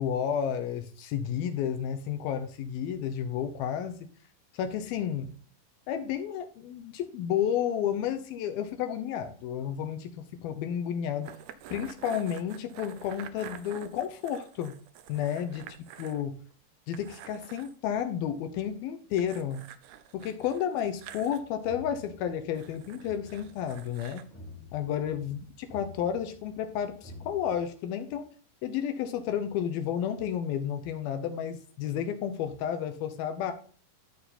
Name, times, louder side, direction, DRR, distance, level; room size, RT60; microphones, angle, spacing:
voice 1, 0.0-4.1 4.5-5.3 5.9-11.3 11.7-14.8 15.1-15.6 16.0-16.4 16.9-19.7 20.1-24.2 24.7-25.4 25.7-28.3 28.6-33.5, left 9 dB, 80° left, 7 dB, 2.7 m, -31 dB
sound 1, 11.2-16.2 16.5-16.6 16.9-17.7 19.2-21.4 22.5-24.3, right 10 dB, 85° right, 2.7 m, -48 dB
sound 2, 20.8-27.6, left 2 dB, 5° left, 1.8 m, -50 dB
13.0 x 4.5 x 4.2 m, 0.42 s
omnidirectional pair, 4.4 m